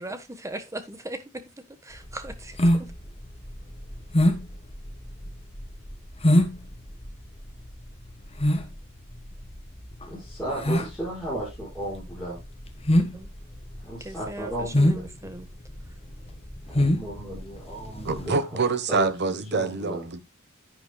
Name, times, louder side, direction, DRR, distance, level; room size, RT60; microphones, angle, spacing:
voice 1, 0.0-1.4 1.8-2.9 13.1-13.3 14.0-15.5, right 1 dB, 15° right, 1.3 m, -38 dB
sound 1, 2.0-18.3, left 1 dB, 30° left, 1.4 m, -25 dB
voice 2, 10.1-12.4 13.8-15.0 16.7-18.4 18.9-20.0, right 1 dB, 5° left, 5.8 m, -34 dB
voice 3, 18.0-20.2, right 4 dB, 50° right, 1.2 m, -26 dB
10.5 x 9.3 x 2.3 m
head